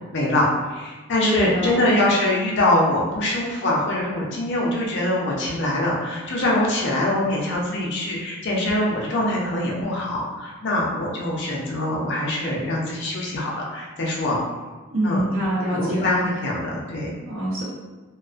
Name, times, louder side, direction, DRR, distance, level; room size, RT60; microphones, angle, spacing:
voice 1, 0.1-14.4 15.0-15.2 15.7-17.1, left 1 dB, 55° left, -3 dB, 0.5 m, -23 dB
voice 2, 1.2-1.8 14.9-16.1 17.3-17.6, right 1 dB, 65° right, -6 dB, 0.8 m, -25 dB
2.4 x 2.3 x 2.3 m, 1.3 s
head